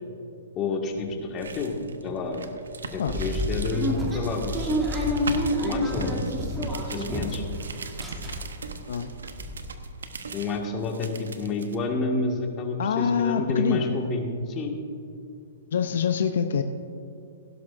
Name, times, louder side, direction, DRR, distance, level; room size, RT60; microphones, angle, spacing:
voice 1, 0.5-1.7 2.0-2.5 2.9-4.8 5.6-6.1 6.8-7.4 10.3-14.8, left 3 dB, 25° left, 2 dB, 1.7 m, -29 dB
sound 1, 0.9-11.8, right 4 dB, 90° right, 0.9 m, -39 dB
sound 2, 3.1-7.5 7.8-8.7 9.1-9.2 9.3-9.6, equal, 15° right, 2.5 m, -28 dB
voice 2, 12.8-14.0 15.7-16.6, left 7 dB, 70° left, 8 dB, 0.6 m, -25 dB
16.5 x 12.0 x 2.5 m, 2.5 s
hypercardioid pair, 135°, 0 cm